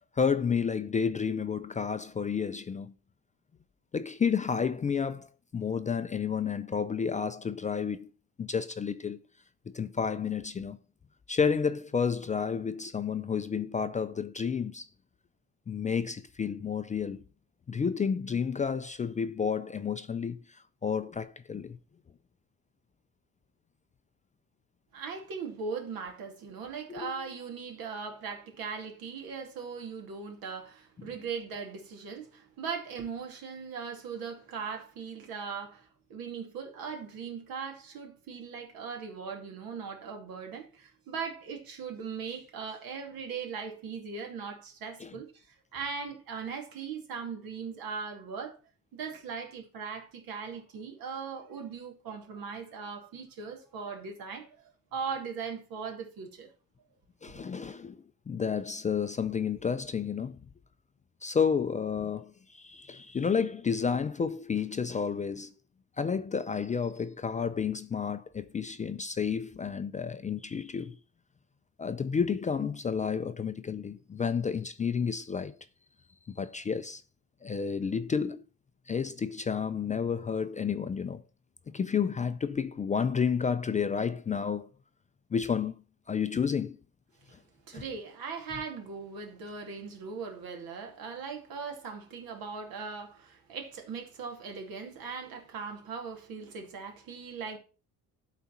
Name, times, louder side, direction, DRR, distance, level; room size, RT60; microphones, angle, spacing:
voice 1, 0.2-2.9 3.9-8.1 8.4-9.2 9.7-10.8 11.3-14.9 15.7-17.2 17.7-21.8 26.9-27.1 45.0-45.1 57.2-60.4 61.2-65.5 66.0-71.0 71.8-75.6 76.3-77.0 77.4-78.4 78.9-81.2 81.7-84.7 85.3-85.8 86.1-86.8 87.7-87.8, left 6 dB, 20° left, 0.3 m, -31 dB
voice 2, 24.9-48.6 48.9-56.5 87.3-87.4 87.7-97.6, right 5 dB, 75° right, 2.5 m, -39 dB
12.0 x 4.1 x 5.7 m
cardioid pair, 140°, 36 cm